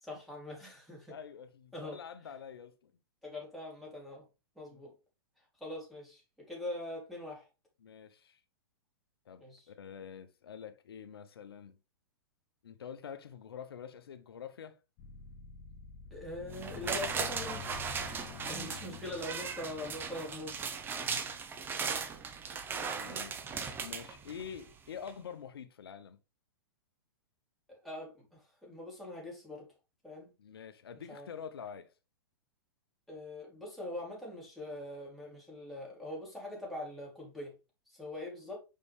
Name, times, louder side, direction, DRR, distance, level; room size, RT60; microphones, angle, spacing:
voice 1, 0.0-1.1 1.7-2.0 3.2-4.2 4.6-4.9 5.6-7.5 9.4-9.7 16.1-20.6 27.7-29.7 30.0-30.3 31.1-31.3 33.1-37.5 37.9-38.6, left 1 dB, ahead, 2.8 m, -43 dB
voice 2, 1.1-2.9 4.7-4.8 7.8-8.4 9.3-11.8 12.6-14.8 18.8-19.0 21.0-21.4 21.8-22.0 22.9-23.4 23.8-26.2 30.4-31.9, left 7 dB, 85° left, 0.8 m, -47 dB
sound 1, 15.0-21.5, left 8 dB, 40° left, 0.8 m, -49 dB
sound 2, 16.5-24.7 25.1-25.2, right 5 dB, 15° right, 0.7 m, -38 dB
5.5 x 5.2 x 3.3 m
hypercardioid pair, 130°, 12 cm